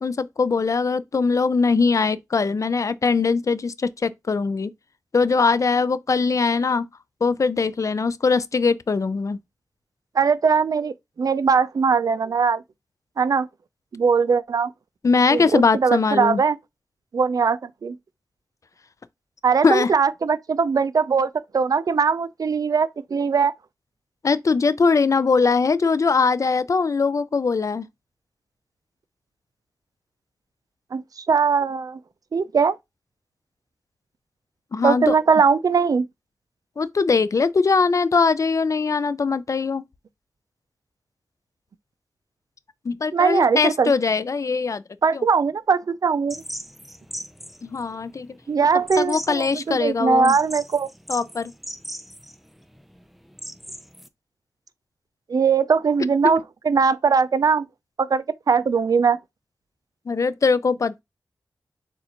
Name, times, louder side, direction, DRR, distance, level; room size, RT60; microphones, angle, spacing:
voice 1, 0.0-4.7 5.1-6.9 7.2-9.4 15.0-16.4 19.6-19.9 24.2-27.9 34.7-35.2 36.8-39.8 42.9-44.8 45.1-45.2 47.6-48.3 49.0-50.4 51.1-51.5 60.1-61.0, left 4 dB, 55° left, 0.4 m, -21 dB
voice 2, 10.2-12.6 13.2-13.5 13.9-14.7 15.3-16.6 17.1-18.0 19.4-23.5 30.9-32.0 32.3-32.7 34.8-36.0 43.1-43.9 45.0-46.4 48.5-50.9 55.3-56.4 56.6-57.7 58.0-59.2, right 5 dB, 65° right, 0.4 m, -20 dB
sound 1, 46.3-54.1, equal, ahead, 0.5 m, -38 dB
6.6 x 2.4 x 2.9 m
cardioid pair, 50°, 7 cm